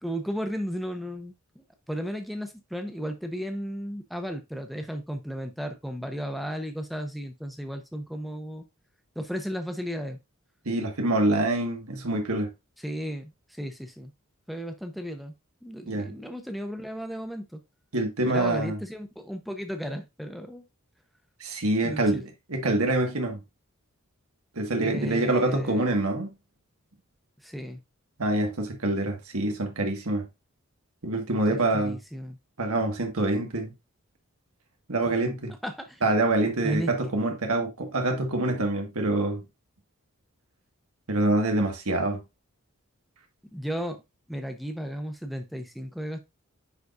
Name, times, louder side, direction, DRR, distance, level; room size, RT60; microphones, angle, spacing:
voice 1, 0.0-8.6 9.2-10.2 12.8-14.1 14.5-15.3 15.6-17.6 18.2-20.6 21.8-22.2 24.8-25.9 27.4-27.8 31.5-32.4 35.1-35.2 35.6-36.0 36.6-36.9 43.5-44.0 44.3-46.2, equal, ahead, 0.7 m, -34 dB
voice 2, 10.6-12.5 15.9-16.1 17.9-18.8 21.4-22.2 22.5-23.4 24.5-26.3 28.2-30.3 31.0-32.0 32.6-33.7 34.9-35.5 36.0-39.4 41.1-42.2, right 2 dB, 75° right, 1.6 m, -26 dB
9.6 x 4.0 x 2.5 m
head